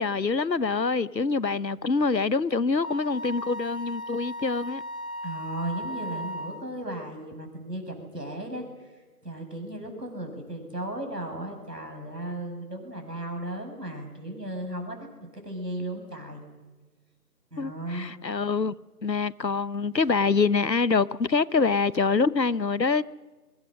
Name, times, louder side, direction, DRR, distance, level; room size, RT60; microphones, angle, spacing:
voice 1, 0.0-4.8 17.6-18.7 19.0-23.0, left 4 dB, 90° left, 1.0 m, -25 dB
Wind instrument woodwind instrument, 2.8-6.7, equal, 40° right, 1.5 m, -36 dB
voice 2, 5.2-8.9 9.2-15.1 15.3-16.4 17.5-18.1, right 1 dB, 75° right, 6.9 m, -35 dB
26.0 x 23.5 x 6.4 m
figure-of-eight pair, 170°, 49 cm